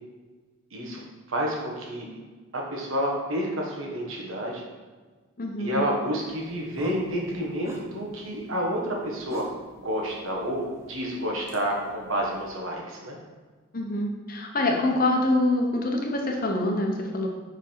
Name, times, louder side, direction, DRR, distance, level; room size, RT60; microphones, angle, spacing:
voice 1, 0.7-1.0 1.3-2.1 2.5-4.6 5.6-13.2, equal, 75° right, -1 dB, 1.4 m, -29 dB
voice 2, 5.4-5.8 13.7-17.3, left 1 dB, 40° left, 1 dB, 0.8 m, -25 dB
sound 1, 6.2-12.5, equal, 15° right, 0.6 m, -45 dB
5.3 x 4.8 x 4.5 m, 1.4 s
head